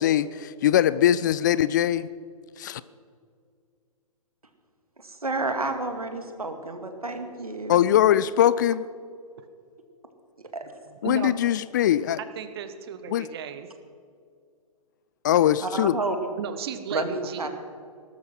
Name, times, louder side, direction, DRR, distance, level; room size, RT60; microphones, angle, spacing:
voice 1, 0.0-2.1 2.6-2.8 7.7-8.8 11.0-12.2 13.1-13.3 15.2-16.0, left 11 dB, 30° left, 17 dB, 0.4 m, -21 dB
voice 2, 5.0-7.8 10.5-10.6 15.6-16.2 16.9-17.5, right 2 dB, 75° right, 6 dB, 2.2 m, -30 dB
voice 3, 10.9-11.3 12.2-13.7 16.4-17.5, right 8 dB, 40° right, 10 dB, 1.2 m, -35 dB
19.0 x 12.5 x 6.0 m, 2.2 s
figure-of-eight pair, 120°, 19 cm